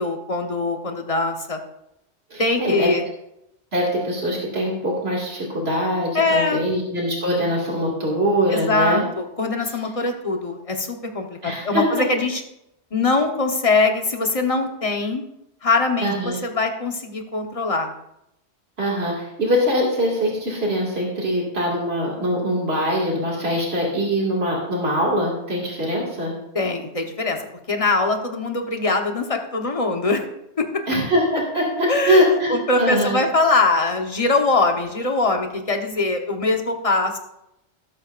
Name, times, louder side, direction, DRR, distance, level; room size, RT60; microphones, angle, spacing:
voice 1, 0.0-1.6 2.4-3.0 6.1-6.7 8.5-12.4 12.9-15.2 15.6-17.9 26.5-27.4 27.7-30.3 30.6-30.7 31.9-32.2 32.5-37.2, left 3 dB, 30° left, 3 dB, 1.2 m, -22 dB
voice 2, 2.3-2.9 3.7-9.0 11.4-12.0 16.0-16.4 18.8-26.3 30.9-33.2, equal, 65° right, -3 dB, 2.6 m, -22 dB
18.0 x 8.3 x 2.5 m, 0.83 s
omnidirectional pair, 1.1 m